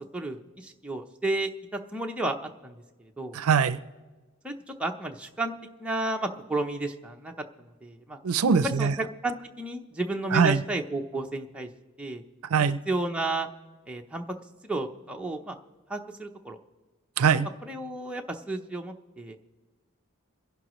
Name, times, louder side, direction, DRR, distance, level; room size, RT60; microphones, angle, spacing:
voice 1, 0.1-2.4 2.6-3.4 4.4-5.5 5.8-7.3 7.6-8.2 8.6-11.7 12.0-12.2 12.6-13.5 13.9-14.2 14.6-15.6 15.9-16.6 17.6-19.4, right 2 dB, 5° right, 1 dB, 0.7 m, -32 dB
voice 2, 3.3-3.8 8.2-8.9 10.3-10.6 12.5-12.8 17.2-17.5, right 6 dB, 75° right, 14 dB, 0.5 m, -22 dB
27.5 x 11.0 x 3.1 m, 1.3 s
head